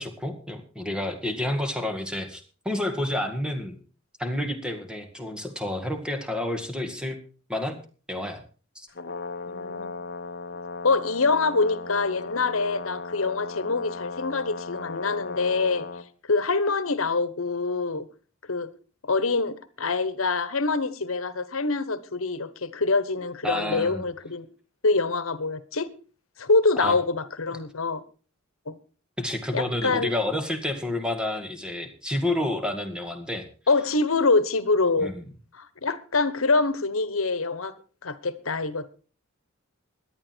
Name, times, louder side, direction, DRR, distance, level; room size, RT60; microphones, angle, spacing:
voice 1, 0.0-3.8 4.2-7.2 7.5-7.8 8.1-8.4 8.8-8.9 23.4-24.0 26.8-27.0 29.2-33.5 35.0-35.2, left 1 dB, 5° right, 2.0 m, -29 dB
Brass instrument, 8.9-16.1, left 3 dB, 50° left, 1.0 m, -37 dB
voice 2, 9.5-10.0 10.8-15.9 16.3-18.1 18.5-18.7 19.0-24.5 24.8-25.9 26.4-28.0 28.7-28.8 29.5-30.1 33.7-35.1 35.5-37.7 38.0-39.0, left 3 dB, 75° left, 1.2 m, -25 dB
17.5 x 11.5 x 4.5 m
head